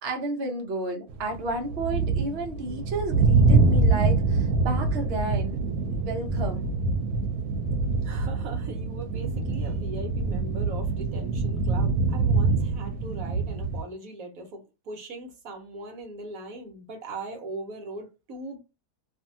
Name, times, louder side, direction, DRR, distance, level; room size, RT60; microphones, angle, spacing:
voice 1, 0.0-5.7 6.0-6.7, right 2 dB, 50° right, 0.9 m, -32 dB
sound 1, 1.1-13.8, right 3 dB, 90° right, 1.1 m, -25 dB
voice 2, 8.0-18.6, right 2 dB, 70° right, 1.1 m, -40 dB
2.6 x 2.6 x 2.6 m
omnidirectional pair, 1.6 m